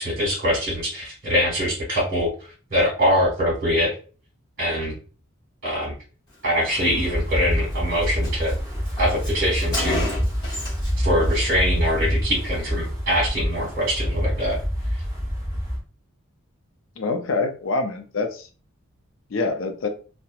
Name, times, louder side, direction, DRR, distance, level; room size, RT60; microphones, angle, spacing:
voice 1, 0.0-3.9 4.6-4.9 5.6-5.9 6.4-8.6 9.0-10.1 11.0-14.6, equal, 40° right, 1.3 m, -23 dB
Wind, 6.6-15.8, equal, 15° right, 0.7 m, -26 dB
Car, 7.3-7.4 7.7-7.8 8.0-11.0 11.2-11.5, left 2 dB, 20° left, 1.0 m, -32 dB
voice 2, 17.0-18.5 19.3-19.9, left 3 dB, 65° left, 0.4 m, -25 dB
2.9 x 2.1 x 2.2 m
head